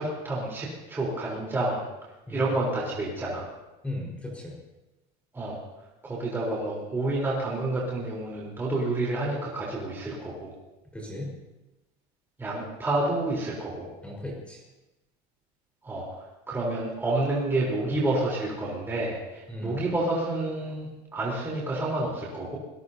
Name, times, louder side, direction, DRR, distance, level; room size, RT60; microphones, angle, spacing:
voice 1, 0.0-1.8 2.3-3.5 5.3-5.6 6.0-10.5 12.4-13.9 15.8-16.0 16.5-22.6, right 2 dB, 10° right, -5 dB, 3.8 m, -29 dB
voice 2, 3.8-4.5 10.9-11.3 14.0-14.6 19.5-19.8, left 1 dB, 5° left, -3 dB, 4.6 m, -36 dB
25.0 x 19.5 x 2.8 m, 1.0 s
cardioid pair, 160°, 20 cm